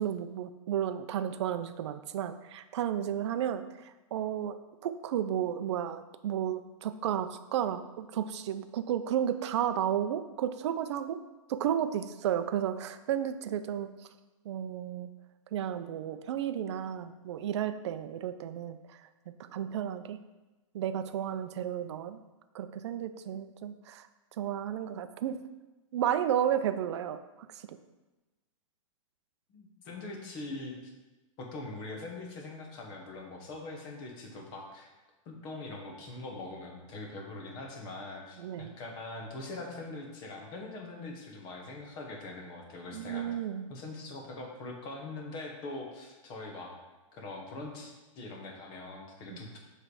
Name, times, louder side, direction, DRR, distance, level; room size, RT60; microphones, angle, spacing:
voice 1, 0.0-3.6 4.1-4.6 4.8-11.2 11.5-13.9 14.5-15.1 15.5-18.8 19.4-20.2 20.7-22.2 22.5-24.1 24.4-25.4 25.9-27.2 38.4-38.7 42.9-43.7, right 10 dB, 55° right, 11 dB, 0.4 m, -32 dB
voice 2, 29.5-30.9 31.4-34.9 35.3-43.3 43.7-46.7 47.1-49.6, left 2 dB, 25° left, 1 dB, 1.0 m, -42 dB
7.5 x 3.3 x 4.7 m, 1.1 s
hypercardioid pair, 165°, 17 cm